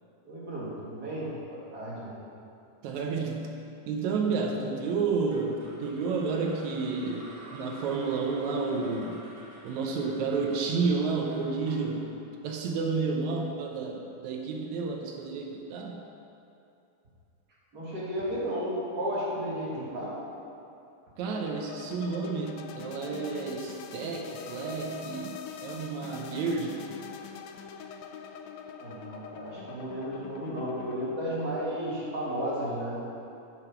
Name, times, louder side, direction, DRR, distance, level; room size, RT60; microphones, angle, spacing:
voice 1, 0.2-2.1 17.7-20.1 28.8-33.1, equal, 35° right, -7 dB, 2.1 m, -33 dB
voice 2, 2.8-3.5 3.9-9.2 9.6-12.1 12.4-16.0 21.2-26.8, right 4 dB, 75° right, 2 dB, 1.9 m, -31 dB
sound 1, 5.3-13.5, right 1 dB, 55° right, 1.5 m, -48 dB
sound 2, 21.3-31.0, left 7 dB, 80° left, 1.6 m, -44 dB
7.3 x 6.5 x 5.7 m, 2.7 s
omnidirectional pair, 3.6 m